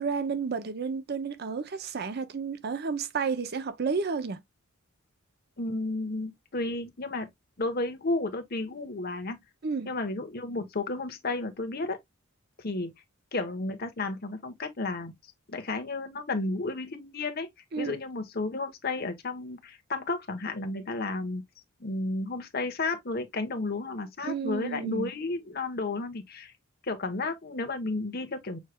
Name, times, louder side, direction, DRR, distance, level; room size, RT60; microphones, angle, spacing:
voice 1, 0.0-4.4 9.6-9.9 17.7-18.0 24.2-25.1, right 5 dB, 50° right, 0.6 m, -31 dB
voice 2, 5.6-7.3 7.6-9.4 9.9-12.0 12.6-12.9 13.3-15.1 15.5-17.5 17.8-21.4 21.8-26.5 26.8-28.6, left 2 dB, 50° left, 1.1 m, -32 dB
6.3 x 3.2 x 2.2 m
head